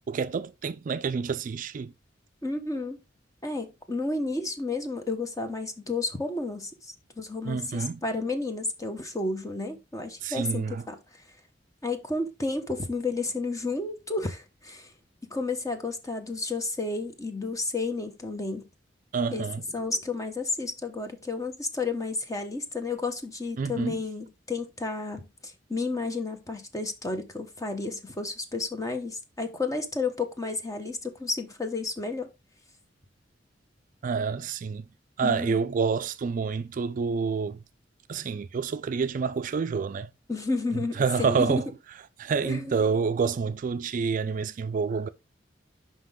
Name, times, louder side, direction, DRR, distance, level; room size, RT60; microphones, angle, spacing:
voice 1, 0.0-1.9 7.4-8.0 10.2-10.8 19.1-19.6 23.6-24.0 34.0-34.9 35.2-37.6 38.1-40.1 41.0-41.7 42.2-45.1, right 5 dB, 45° right, 0.3 m, -28 dB
voice 2, 2.4-3.0 3.4-11.0 11.8-14.9 15.2-18.6 19.3-19.4 19.7-32.3 35.2-35.6 40.3-41.6 42.4-42.8, left 3 dB, 20° left, 1.0 m, -32 dB
5.9 x 5.3 x 3.6 m
head